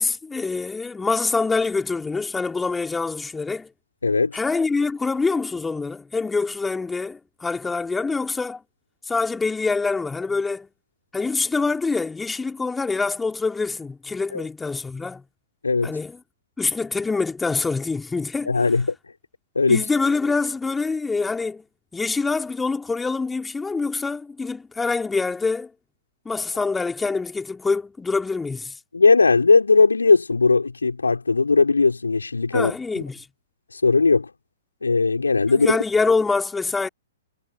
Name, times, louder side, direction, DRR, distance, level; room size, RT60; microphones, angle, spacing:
voice 1, 0.0-3.7 4.3-8.6 9.1-10.7 11.1-15.2 15.8-16.2 16.6-18.5 19.7-21.6 21.9-25.7 26.3-28.8 32.5-33.3 35.5-36.9, left 4 dB, 10° left, 3.9 m, -25 dB
voice 2, 4.0-4.4 14.3-14.4 15.6-15.9 18.5-18.9 19.6-19.8 28.9-32.7 33.7-34.3 34.8-35.8, left 4 dB, 75° left, 3.9 m, -18 dB
figure-of-eight pair, 115°, 0 cm